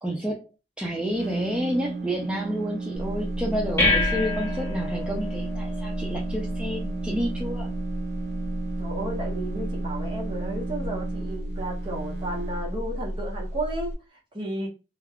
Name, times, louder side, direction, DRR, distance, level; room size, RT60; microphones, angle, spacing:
voice 1, 0.0-0.5 0.8-7.7, equal, 5° right, 0.4 m, -30 dB
sound 1, 0.9-12.6, right 4 dB, 70° right, 0.5 m, -34 dB
sound 2, 2.9-13.9, left 1 dB, 15° left, 0.8 m, -30 dB
voice 2, 8.8-14.7, right 1 dB, 30° right, 0.9 m, -33 dB
2.3 x 2.1 x 3.5 m
head